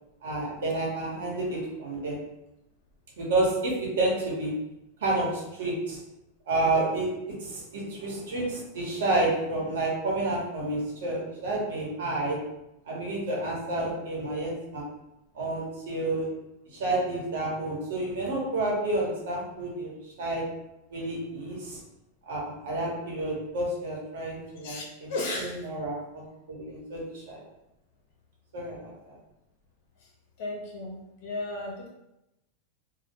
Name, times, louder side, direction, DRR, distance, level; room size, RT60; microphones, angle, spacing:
voice 1, 0.2-2.2 3.2-4.5 5.0-6.0 6.5-12.4 12.9-14.9 15.3-16.3 16.7-19.9 20.2-20.4 20.9-21.8 22.2-25.1 25.4-26.2 26.5-27.4 28.5-29.1, right 2 dB, 80° right, -3 dB, 0.9 m, -30 dB
voice 2, 25.1-25.6 30.0-30.1 30.4-31.9, left 2 dB, 60° left, -2 dB, 0.7 m, -34 dB
2.2 x 2.1 x 2.8 m, 0.89 s
supercardioid pair, 125°, 0 cm